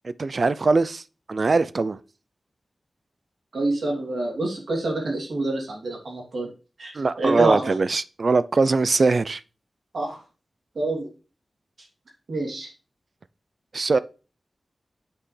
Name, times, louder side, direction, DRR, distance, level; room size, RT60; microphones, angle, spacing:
voice 1, 0.0-1.0 1.3-2.0 6.9-9.4 13.7-14.0, right 3 dB, 50° right, 0.4 m, -21 dB
voice 2, 3.5-6.5 6.8-7.7 9.9-10.2 10.7-11.1 12.3-12.7, right 2 dB, 75° right, 2.9 m, -27 dB
8.1 x 5.6 x 3.3 m
wide cardioid pair, 100°, 0 cm